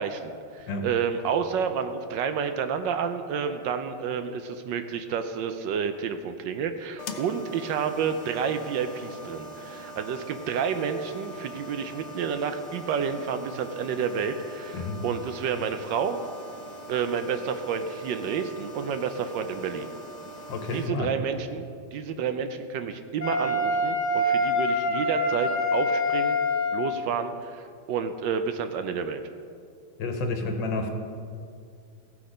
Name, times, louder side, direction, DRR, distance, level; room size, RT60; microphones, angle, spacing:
voice 1, 0.0-16.2 16.9-19.9 20.7-21.7 21.9-26.4 26.7-29.2, right 6 dB, 75° right, 8 dB, 1.2 m, -30 dB
sound 1, 7.0-20.9, equal, 90° left, 0.6 m, -42 dB
voice 2, 20.5-21.1 30.0-30.9, left 3 dB, 70° left, 4 dB, 1.7 m, -30 dB
Wind instrument woodwind instrument, 23.2-27.0, left 1 dB, 10° left, 1.7 m, -25 dB
15.5 x 6.2 x 5.0 m, 2.3 s
omnidirectional pair, 2.2 m